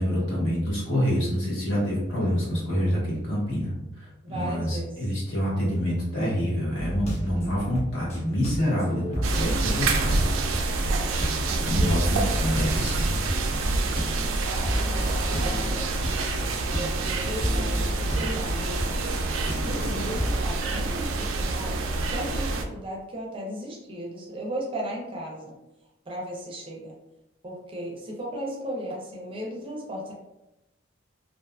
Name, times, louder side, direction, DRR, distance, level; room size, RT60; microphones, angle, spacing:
voice 1, 0.0-10.3 11.6-13.2, equal, 65° left, -6 dB, 1.2 m, -27 dB
voice 2, 4.2-5.1 11.5-11.8 12.1-12.3 13.9-16.2 16.7-19.1 19.6-25.5 26.1-27.0 27.4-30.1, equal, 25° right, -2 dB, 0.5 m, -36 dB
sound 1, 6.8-14.3 14.6-20.4, equal, 35° left, 0.7 m, -32 dB
sound 2, 9.2-22.6, right 3 dB, 90° right, 0.3 m, -27 dB
2.5 x 2.4 x 2.3 m, 0.94 s
head